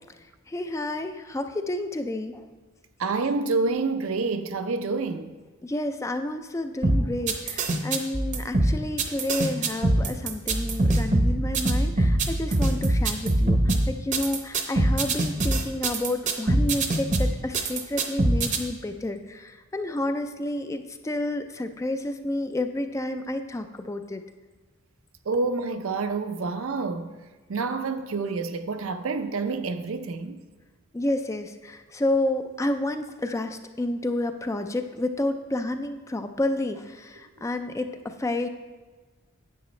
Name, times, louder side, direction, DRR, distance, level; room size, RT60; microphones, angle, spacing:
voice 1, 0.5-2.4 5.6-24.2 30.9-38.5, left 1 dB, 15° left, 0.3 m, -30 dB
voice 2, 3.0-5.3 25.3-27.1 27.5-30.4, right 4 dB, 75° right, 0.6 m, -28 dB
sound 1, 6.8-18.6, right 1 dB, 35° right, 0.7 m, -23 dB
10.0 x 8.1 x 3.2 m
head